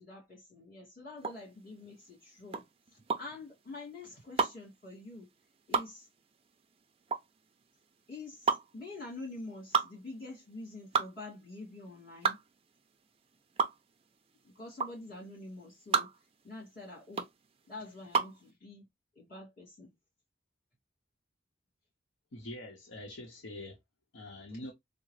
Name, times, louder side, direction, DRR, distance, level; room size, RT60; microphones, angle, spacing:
voice 1, 0.0-2.7 2.9-5.3 5.7-6.1 8.1-12.4 14.4-16.1 16.4-17.3 17.7-18.9 19.1-19.9 24.5-24.6, left 2 dB, 50° left, 2.2 m, -46 dB
sound 1, 1.2-18.4, right 5 dB, 30° right, 0.4 m, -33 dB
voice 2, 22.3-23.8 24.1-24.7, left 1 dB, 90° left, 0.8 m, -44 dB
3.6 x 2.0 x 3.1 m
head